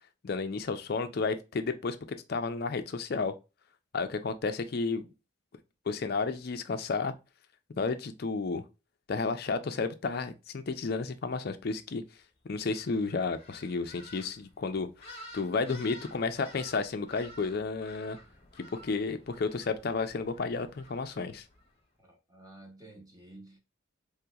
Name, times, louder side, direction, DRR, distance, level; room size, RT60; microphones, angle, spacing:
voice 1, 0.2-3.3 3.9-5.1 5.9-7.1 7.8-8.6 9.1-12.0 12.4-14.9 15.3-18.2 18.8-21.4, left 4 dB, 50° left, 0.4 m, -32 dB
sound 1, 12.7-21.8, equal, 30° left, 0.9 m, -52 dB
voice 2, 22.0-23.6, right 2 dB, 15° right, 0.8 m, -52 dB
3.4 x 2.8 x 2.2 m
head